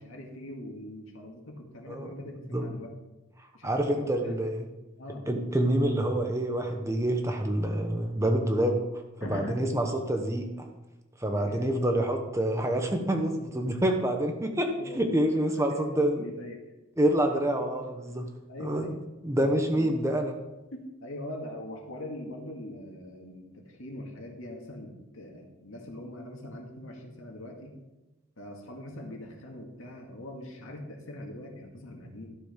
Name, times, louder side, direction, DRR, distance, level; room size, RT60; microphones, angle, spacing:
voice 1, 0.0-2.9 3.5-4.4 5.0-5.3 9.2-9.6 11.3-11.6 14.8-15.0 15.3-16.6 17.3-17.4 17.7-19.0 19.4-20.0 20.7-27.8 28.4-32.3, left 1 dB, 75° left, 1 dB, 2.0 m, -42 dB
voice 2, 3.4-4.7 5.3-10.7 11.2-16.2 17.0-18.3 18.6-18.9 19.2-20.4, right 1 dB, 15° right, 4 dB, 0.9 m, -27 dB
12.5 x 6.9 x 5.1 m, 1.0 s
head